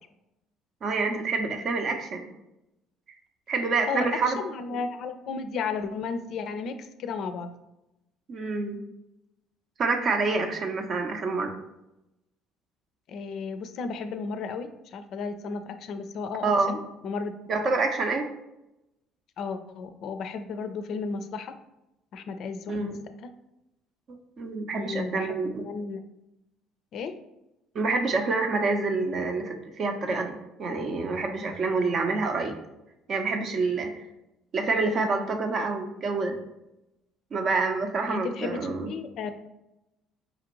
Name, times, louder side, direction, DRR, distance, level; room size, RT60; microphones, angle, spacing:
voice 1, 0.8-2.3 3.5-4.4 8.3-8.8 9.8-11.5 16.4-16.8 17.5-18.3 22.7-23.0 24.4-25.6 27.7-32.6 33.1-34.0 34.5-36.4 37.3-38.9, right 3 dB, 50° right, 5 dB, 0.6 m, -27 dB
voice 2, 3.9-7.5 13.1-17.4 19.4-21.5 22.1-22.9 23.2-23.3 24.7-26.0 26.9-27.1 38.1-39.4, left 5 dB, 60° left, 8 dB, 0.4 m, -34 dB
5.1 x 2.5 x 2.9 m, 0.91 s
hypercardioid pair, 65°, 0 cm